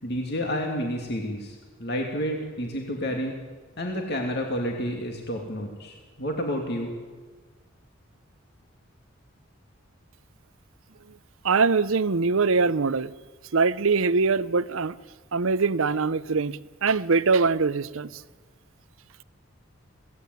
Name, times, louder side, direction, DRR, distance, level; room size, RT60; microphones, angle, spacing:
voice 1, 0.0-3.3 3.8-6.9, equal, 50° left, 2.6 m, -30 dB
voice 2, 11.4-13.1 13.5-14.9 15.3-18.1, right 4 dB, 75° right, 0.7 m, -23 dB
24.0 x 17.5 x 9.5 m
head